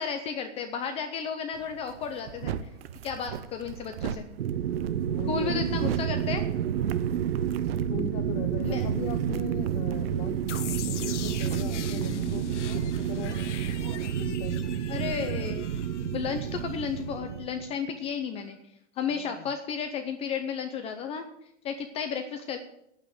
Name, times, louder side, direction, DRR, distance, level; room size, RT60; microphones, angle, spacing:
voice 1, 0.0-2.6 3.0-4.3 5.3-6.4 8.6-8.9 14.9-15.7 16.0-18.6 19.0-21.3 21.6-22.6, left 7 dB, 15° left, 6 dB, 0.6 m, -33 dB
sound 1, 1.5-14.1, right 9 dB, 55° right, 0.9 m, -40 dB
sound 2, 4.4-17.7, right 9 dB, 90° right, 1.0 m, -30 dB
voice 2, 5.1-5.8 7.9-10.5 10.9-13.4 14.2-14.7 19.1-19.5, left 10 dB, 40° left, 5 dB, 0.9 m, -39 dB
sound 3, 10.5-17.3, left 9 dB, 80° left, 1.3 m, -41 dB
9.2 x 8.9 x 7.8 m, 0.79 s
hypercardioid pair, 155°, 35 cm